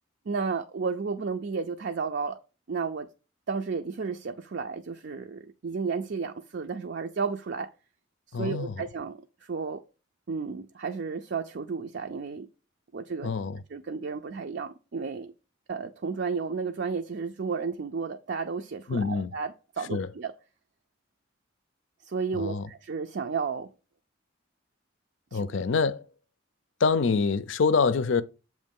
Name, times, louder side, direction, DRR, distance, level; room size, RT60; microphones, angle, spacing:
voice 1, 0.3-2.4 2.7-3.1 3.5-7.7 8.3-9.8 10.3-12.5 12.9-13.3 13.7-15.3 15.7-20.3 22.0-23.7 25.3-25.5, right 5 dB, 60° right, 0.4 m, -32 dB
voice 2, 8.3-8.7 13.2-13.6 18.9-19.3 19.9-20.1 22.3-22.7 25.3-26.0 26.8-28.2, left 4 dB, 70° left, 0.5 m, -25 dB
7.5 x 3.1 x 5.3 m
head